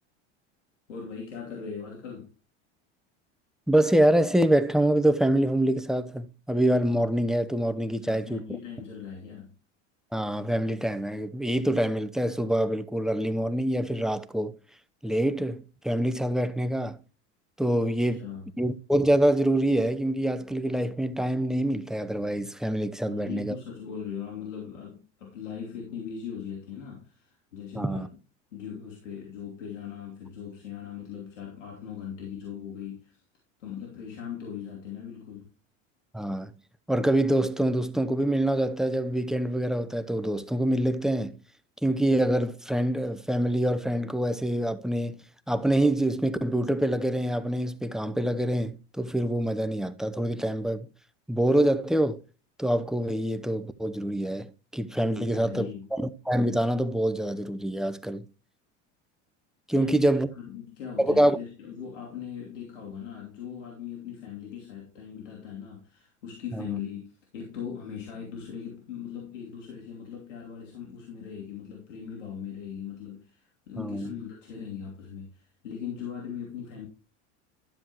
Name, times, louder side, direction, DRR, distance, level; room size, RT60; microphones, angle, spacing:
voice 1, 0.9-2.3 8.0-9.5 18.1-18.5 23.0-28.1 28.5-33.2 33.6-35.5 55.1-55.9 59.7-76.9, left 8 dB, 90° left, 2.9 m, -39 dB
voice 2, 3.7-8.4 10.1-14.6 15.0-17.0 17.6-18.3 18.6-23.6 27.7-28.1 36.1-36.5 36.9-41.4 41.8-50.9 51.3-52.2 52.6-58.2 59.7-60.3 61.0-61.4 66.6-66.7 73.8-74.1, right 1 dB, ahead, 0.7 m, -25 dB
12.0 x 7.5 x 2.9 m
hypercardioid pair, 90°, 36 cm